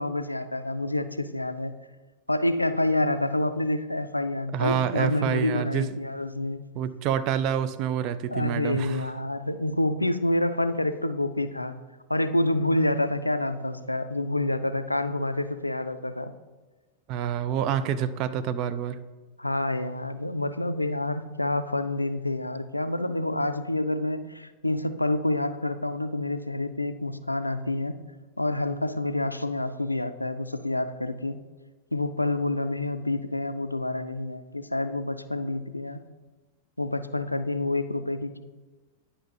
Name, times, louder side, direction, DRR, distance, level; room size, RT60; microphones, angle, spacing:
voice 1, 0.0-1.8 2.3-6.6 8.3-11.8 12.1-16.3 19.4-28.0 28.4-31.4 31.9-36.0 36.8-38.4, left 1 dB, 85° left, 11 dB, 0.3 m, -28 dB
voice 2, 4.5-5.9 6.8-9.1 17.1-19.0, right 9 dB, 40° right, 12 dB, 0.4 m, -27 dB
9.9 x 5.4 x 2.8 m, 1.2 s
figure-of-eight pair, 90°, 0 cm